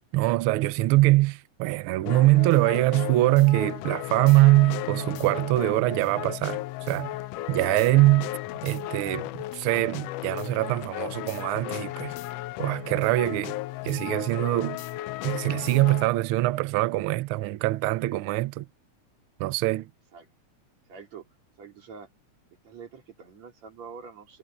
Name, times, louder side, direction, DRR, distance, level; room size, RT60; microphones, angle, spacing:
voice 1, 0.1-7.2 7.5-8.3 8.6-12.1 12.6-13.6 13.8-14.8 15.2-18.7 19.4-19.9, right 18 dB, 90° right, 1.2 m, -23 dB
sound 1, 2.1-16.1, left 16 dB, 85° left, 1.4 m, -35 dB
voice 2, 20.9-21.3 21.6-22.1 22.6-24.4, right 6 dB, 65° right, 4.6 m, -45 dB
omnidirectional pair, 3.3 m